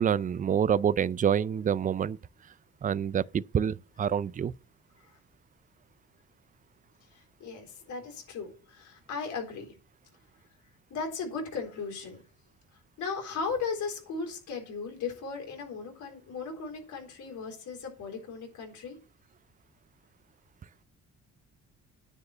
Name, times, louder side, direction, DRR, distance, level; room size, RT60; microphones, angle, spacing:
voice 1, 0.0-2.2 2.8-4.5, right 8 dB, 25° right, 0.4 m, -27 dB
voice 2, 7.1-9.7 10.9-12.2 13.0-19.0, left 5 dB, 75° left, 4.0 m, -37 dB
9.8 x 4.7 x 7.7 m
cardioid pair, 90°, 30 cm